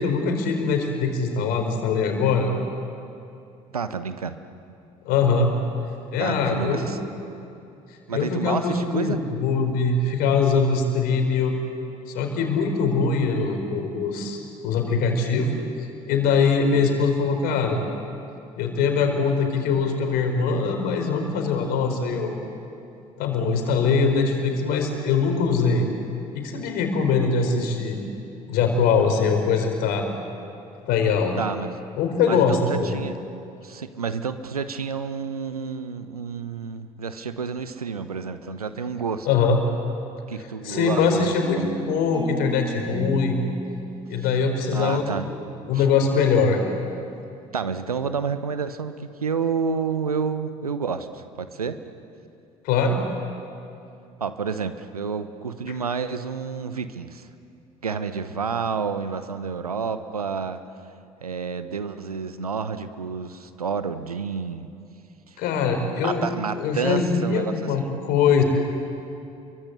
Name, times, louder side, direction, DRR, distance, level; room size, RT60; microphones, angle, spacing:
voice 1, 0.0-2.5 5.0-5.5 6.1-6.9 8.1-11.6 12.1-15.5 15.8-17.8 18.6-22.3 23.2-25.9 26.3-28.0 28.5-30.1 30.9-31.4 32.0-33.0 39.2-39.6 40.6-43.4 44.1-45.4 45.7-46.6 52.6-53.0 65.4-66.2 66.6-68.4, left 5 dB, 55° left, 5 dB, 4.4 m, -22 dB
voice 2, 3.7-4.4 6.2-7.0 8.1-9.2 31.3-31.7 32.3-33.2 33.6-39.3 40.3-41.7 44.7-45.3 45.7-45.9 47.5-51.8 54.2-57.3 57.8-60.6 61.2-64.7 65.3-65.4 66.0-67.7, right 5 dB, 80° right, 11 dB, 1.0 m, -29 dB
sound 1, 40.7-45.4, right 3 dB, 20° right, 1.6 m, -34 dB
29.5 x 23.5 x 8.3 m, 2.6 s
figure-of-eight pair, 55°, 19 cm